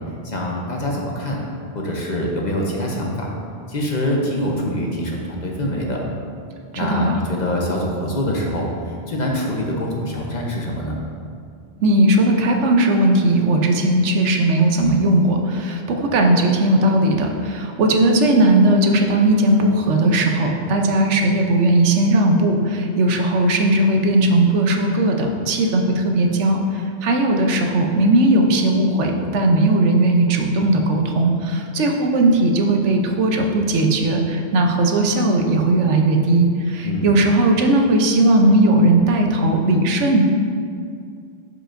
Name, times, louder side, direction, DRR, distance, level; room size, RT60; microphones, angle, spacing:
voice 1, 0.2-1.4 1.7-3.3 3.7-6.0 6.7-11.0 36.8-37.1, left 1 dB, 40° left, -2 dB, 0.9 m, -24 dB
voice 2, 6.7-7.1 11.8-40.2, right 1 dB, 85° right, 3 dB, 1.1 m, -17 dB
11.5 x 4.9 x 2.6 m, 2.3 s
omnidirectional pair, 1.2 m